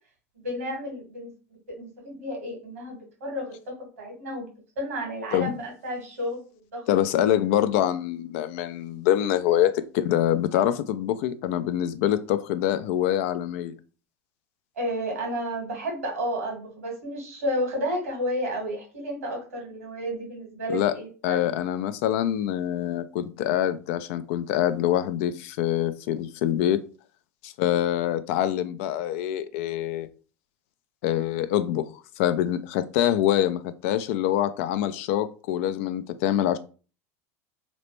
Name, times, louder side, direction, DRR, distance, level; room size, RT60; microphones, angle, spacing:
voice 1, 0.3-4.5 4.8-7.0 14.8-21.4, equal, 90° right, 1.5 m, -32 dB
voice 2, 6.9-13.7 20.7-21.0 21.2-26.8 27.4-30.1 31.0-31.8 32.2-36.6, left 11 dB, 65° left, 0.4 m, -25 dB
3.0 x 2.1 x 3.1 m
hypercardioid pair, 90°, 8 cm